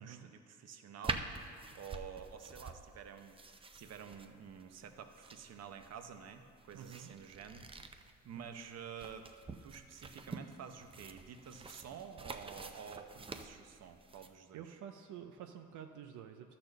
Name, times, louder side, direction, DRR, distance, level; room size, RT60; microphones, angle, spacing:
voice 1, 0.0-9.3 9.6-14.8, right 7 dB, 55° right, 7 dB, 0.8 m, -50 dB
sound 1, 1.0-14.3, right 3 dB, 20° right, 0.5 m, -47 dB
voice 2, 6.7-7.1 8.3-8.6 14.5-16.6, right 9 dB, 85° right, 5 dB, 0.5 m, -49 dB
12.0 x 4.3 x 6.6 m, 2.2 s
cardioid pair, 90°, 30 cm